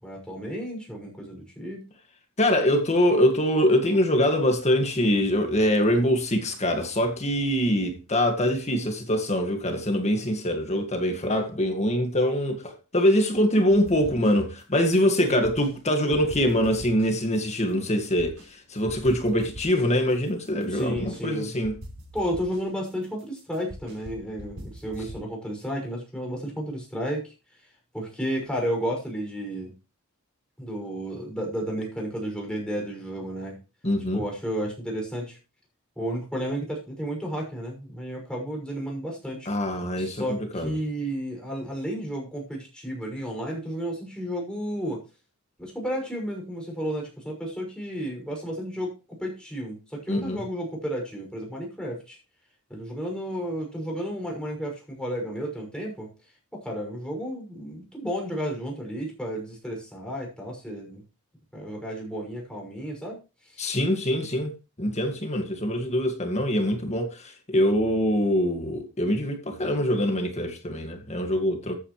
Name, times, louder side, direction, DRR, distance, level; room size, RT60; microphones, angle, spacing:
voice 1, 0.0-1.8 20.7-21.5 22.1-27.3 27.9-29.7 30.6-33.6 34.1-35.4 36.0-39.5 40.0-45.0 45.6-52.2 52.7-56.1 56.5-61.0 61.5-63.6, equal, 5° left, 6.2 m, -32 dB
voice 2, 2.4-21.7 33.8-34.2 39.5-40.8 50.1-50.4 63.6-64.5 64.8-71.8, equal, 30° left, 2.0 m, -24 dB
sound 1, 13.7-14.6 14.9-15.8 16.1-18.5 18.9-21.3 21.6-25.3, equal, 60° right, 5.0 m, -43 dB
14.0 x 9.1 x 3.2 m
head